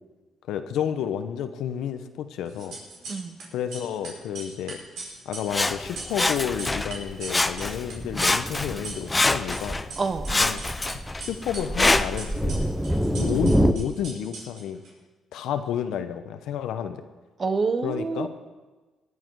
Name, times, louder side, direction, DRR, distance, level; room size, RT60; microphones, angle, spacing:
voice 1, 0.5-2.8 3.5-4.8 5.2-9.8 10.4-10.6 11.2-12.7 13.1-14.8 15.3-17.0 17.8-18.3, left 9 dB, 85° left, 9 dB, 1.0 m, -30 dB
sound 1, 2.5-3.4 3.7-9.2 9.5-10.9 11.2-14.9, right 3 dB, 80° right, 4.8 m, -39 dB
Sawing, 5.5-7.0 7.3-7.9 8.1-9.9 10.3-12.3 12.9-13.0, left 2 dB, 20° left, 0.6 m, -25 dB
Thunder, 5.8-13.7, equal, 5° right, 1.0 m, -28 dB
voice 2, 17.4-18.3, right 4 dB, 40° right, 9 dB, 1.2 m, -27 dB
19.0 x 10.5 x 4.8 m, 1.3 s
cardioid pair, 90°, 0 cm